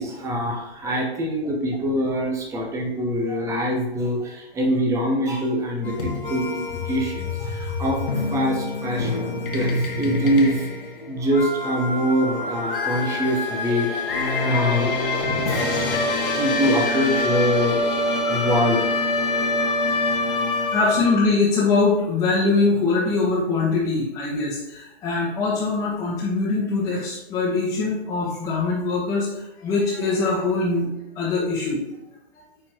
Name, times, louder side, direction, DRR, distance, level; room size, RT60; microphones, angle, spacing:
voice 1, 0.0-10.7 11.1-14.0 14.4-15.7 16.4-17.8 18.3-18.9, equal, 10° right, 2 dB, 0.8 m, -24 dB
sound 1, 5.8-21.3, left 2 dB, 55° left, 1.5 m, -25 dB
voice 2, 20.7-30.9 31.1-31.8, left 3 dB, 10° left, -8 dB, 1.2 m, -23 dB
9.4 x 4.4 x 3.0 m, 0.96 s
figure-of-eight pair, 120°, 33 cm